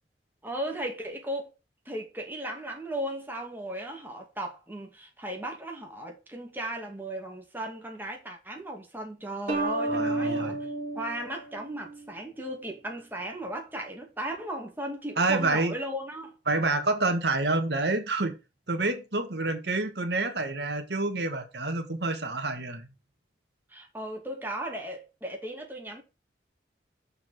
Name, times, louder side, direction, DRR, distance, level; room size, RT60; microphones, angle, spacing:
voice 1, 0.4-1.5 1.8-16.4 23.7-26.0, right 1 dB, 10° right, 2.4 m, -36 dB
sound 1, 9.5-12.1, right 2 dB, 45° right, 3.0 m, -31 dB
voice 2, 9.9-10.6 15.2-15.7 16.5-18.3 18.7-22.9, right 2 dB, 70° right, 1.7 m, -28 dB
7.0 x 5.2 x 6.4 m
head